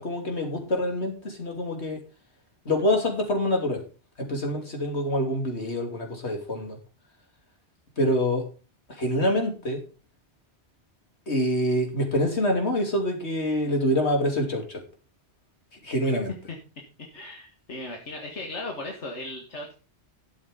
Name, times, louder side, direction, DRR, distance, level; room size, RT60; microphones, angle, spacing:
voice 1, 0.0-2.0 2.6-3.8 4.2-6.8 8.0-8.4 9.0-9.8 11.3-14.8 15.8-16.3, left 1 dB, 70° left, 2 dB, 3.2 m, -26 dB
voice 2, 17.0-19.7, left 2 dB, 90° left, 1 dB, 2.2 m, -37 dB
12.5 x 7.0 x 5.2 m, 0.34 s
omnidirectional pair, 1.1 m